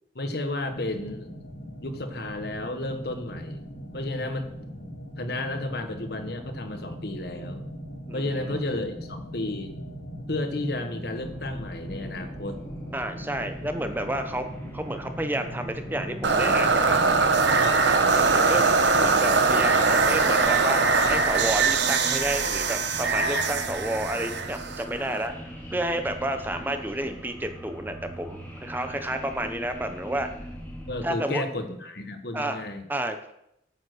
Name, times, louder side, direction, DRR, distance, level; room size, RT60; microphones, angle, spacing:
voice 1, 0.1-1.4 1.8-3.6 3.9-4.5 5.2-7.7 8.1-9.7 10.3-12.6 30.9-32.8, left 2 dB, 55° left, 7 dB, 1.2 m, -32 dB
sound 1, 0.7-17.7, equal, 80° left, 2.7 m, -39 dB
voice 2, 8.1-8.6 12.9-14.5 14.7-17.3 18.3-18.7 18.9-25.3 25.7-30.3 31.0-31.4 32.3-32.6 32.9-33.3, right 1 dB, 10° right, 7 dB, 0.7 m, -30 dB
sound 2, 11.2-31.1, equal, 10° left, 2.3 m, -42 dB
sound 3, 16.2-25.3, right 4 dB, 65° right, 0.9 m, -22 dB
9.0 x 7.1 x 6.5 m, 0.80 s
head